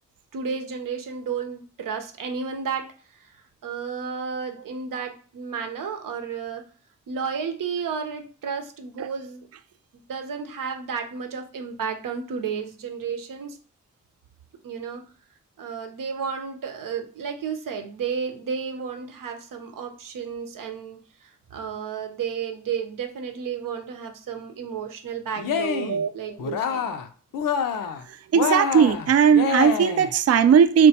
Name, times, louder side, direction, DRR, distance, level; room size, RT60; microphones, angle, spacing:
voice 1, 0.3-2.9 3.6-6.6 7.1-9.5 10.1-13.6 14.6-15.0 15.6-26.9, right 6 dB, 75° right, 0.7 m, -32 dB
Cheering, 25.4-26.0 26.4-27.1 27.3-28.0 28.3-30.1, left 6 dB, 80° left, 0.5 m, -26 dB
voice 2, 28.3-30.9, right 7 dB, 50° right, 0.4 m, -17 dB
4.3 x 2.2 x 2.7 m
supercardioid pair, 40°, 33 cm